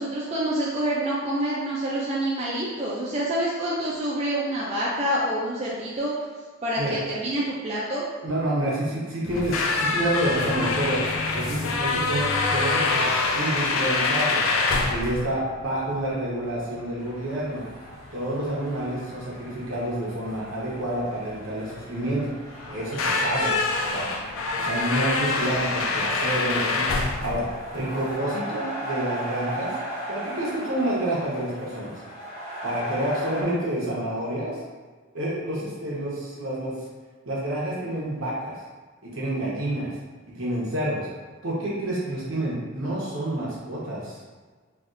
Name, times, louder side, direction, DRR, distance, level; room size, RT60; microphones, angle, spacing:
voice 1, 0.0-6.1 6.6-8.0, right 1 dB, 30° right, -6 dB, 0.4 m, -27 dB
voice 2, 8.2-11.0 11.3-14.4 14.9-17.6 18.1-22.3 22.7-23.5 23.8-24.1 24.6-26.9 27.2-27.4 27.7-29.7 30.1-31.9 32.6-34.6 35.1-36.8 37.2-38.5 39.0-39.9 40.3-41.1 41.4-44.2, right 1 dB, 70° right, -6 dB, 0.9 m, -28 dB
sound 1, 9.2-28.2, left 3 dB, 70° left, 0.3 m, -26 dB
sound 2, 17.0-33.4, right 1 dB, 50° left, 1.3 m, -38 dB
3.3 x 2.4 x 2.6 m, 1.4 s
head